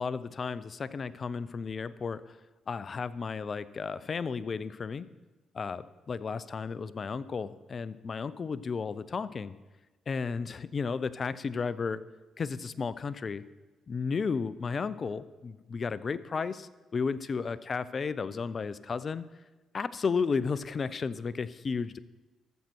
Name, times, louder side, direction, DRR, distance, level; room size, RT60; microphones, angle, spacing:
voice 1, 0.0-2.4 2.7-5.1 5.5-9.5 10.1-12.0 12.4-13.4 13.9-19.2 19.7-22.0, left 5 dB, 45° left, 17 dB, 0.5 m, -33 dB
13.5 x 7.5 x 4.5 m, 1.2 s
supercardioid pair, 60°, 0 cm